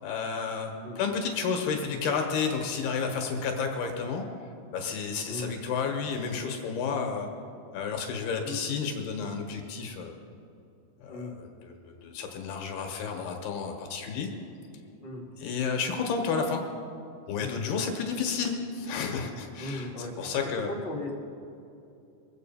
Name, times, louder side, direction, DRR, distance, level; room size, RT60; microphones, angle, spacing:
voice 1, 0.0-4.2 4.7-7.3 7.7-10.2 11.0-14.3 15.4-16.6 17.3-19.9 20.2-20.7, left 5 dB, 70° left, 3 dB, 2.8 m, -31 dB
voice 2, 5.3-5.6 8.4-8.7 11.1-11.3 15.0-15.2 17.4-17.5 19.6-20.1 20.5-21.1, left 2 dB, 35° left, -2 dB, 0.8 m, -37 dB
23.5 x 7.9 x 5.6 m, 2.7 s
omnidirectional pair, 5.2 m